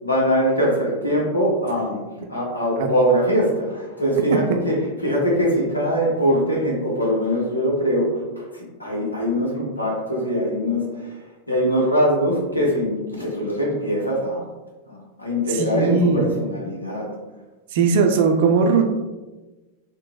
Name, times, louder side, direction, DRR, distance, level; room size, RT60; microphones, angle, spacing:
voice 1, 0.0-11.1 11.5-14.5 14.9-17.1, equal, 85° left, -3 dB, 0.8 m, -22 dB
voice 2, 15.5-16.2 17.7-18.8, right 5 dB, 55° right, 4 dB, 0.4 m, -18 dB
3.7 x 2.0 x 2.3 m, 1.2 s
figure-of-eight pair, 90°, 0 cm